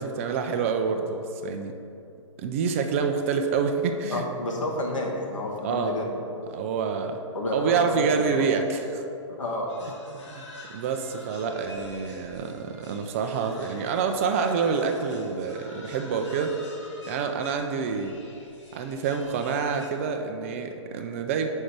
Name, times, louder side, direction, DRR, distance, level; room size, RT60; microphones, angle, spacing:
voice 1, 0.0-1.8 2.4-4.2 5.6-6.0 6.5-7.2 7.5-9.0 10.1-16.6 17.1-18.1 18.7-21.5, right 5 dB, 25° right, 5 dB, 0.4 m, -27 dB
voice 2, 4.1-6.2 7.3-8.5 9.4-9.7, left 1 dB, 85° left, -1 dB, 1.5 m, -30 dB
sound 1, 9.7-19.9, left 2 dB, 65° left, 1.6 m, -47 dB
5.3 x 5.0 x 5.9 m, 2.7 s
hypercardioid pair, 150°, 16 cm